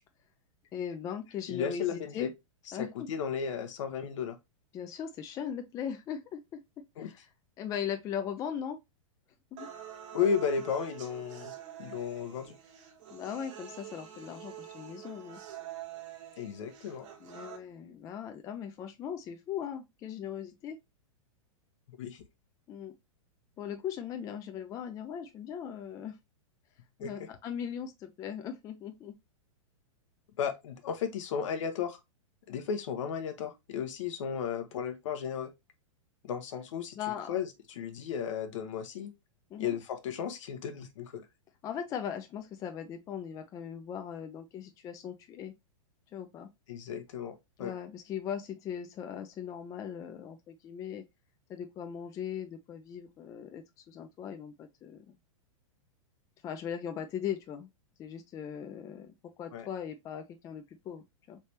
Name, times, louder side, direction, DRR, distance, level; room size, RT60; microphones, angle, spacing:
voice 1, 0.7-2.3 2.7-3.2 4.7-6.6 7.0-7.3 7.6-8.8 9.5-9.7 13.1-15.4 17.2-20.8 22.7-22.9 23.6-26.2 27.0-29.1 36.9-37.3 39.5-39.8 41.6-45.5 46.1-46.5 47.6-51.0 51.5-55.2 56.4-57.7 58.0-61.4, left 8 dB, 20° left, 0.3 m, -39 dB
voice 2, 1.5-2.3 2.7-4.4 7.0-7.1 10.1-11.5 11.8-12.6 16.4-17.1 22.0-22.2 27.0-27.1 30.4-32.0 32.5-35.5 36.2-37.0 37.3-39.1 39.6-41.3 46.7-47.7 59.5-59.7, left 7 dB, 70° left, 0.8 m, -34 dB
sound 1, 9.6-17.6, right 11 dB, 65° right, 1.3 m, -46 dB
3.3 x 3.1 x 2.8 m
hypercardioid pair, 130°, 17 cm